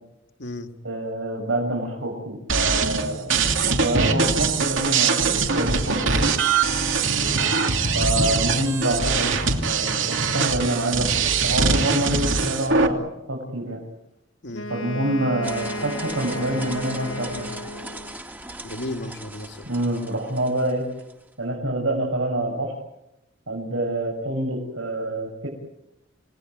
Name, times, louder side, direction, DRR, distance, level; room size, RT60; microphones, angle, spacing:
voice 1, 0.8-3.3 3.8-6.3 7.9-13.8 14.7-17.5 19.7-20.9 21.4-22.7 23.5-25.5, right 1 dB, 90° right, -2 dB, 7.2 m, -26 dB
sound 1, 2.5-12.9, right 5 dB, 75° right, 2.9 m, -22 dB
Wind instrument woodwind instrument, 14.5-18.2, left 1 dB, 80° left, 1.4 m, -34 dB
sound 2, 15.4-21.2, right 1 dB, 10° right, 1.9 m, -39 dB
voice 2, 18.6-19.7, left 1 dB, 60° left, 5 dB, 2.3 m, -34 dB
29.5 x 19.5 x 9.3 m, 0.86 s
head